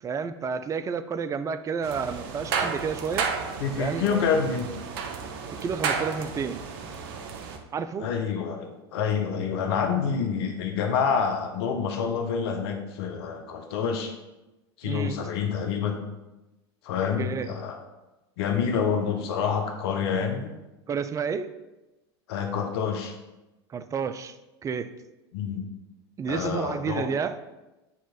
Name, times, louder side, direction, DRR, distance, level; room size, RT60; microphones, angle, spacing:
voice 1, 0.0-3.3 3.8-4.2 5.6-6.6 7.7-8.1 14.8-15.2 17.2-17.5 20.9-21.5 23.7-24.4 24.6-24.9 26.2-27.4, right 6 dB, 25° right, 12 dB, 0.4 m, -30 dB
sound 1, 1.8-7.6, right 5 dB, 60° right, 0.8 m, -32 dB
voice 2, 3.6-4.7 8.0-14.1 14.8-16.0 16.8-17.8 18.4-20.5 22.3-23.1 25.3-25.7 26.3-27.1, left 6 dB, 70° left, 4 dB, 0.9 m, -27 dB
8.4 x 3.0 x 4.3 m, 1.0 s
hypercardioid pair, 90°, 14 cm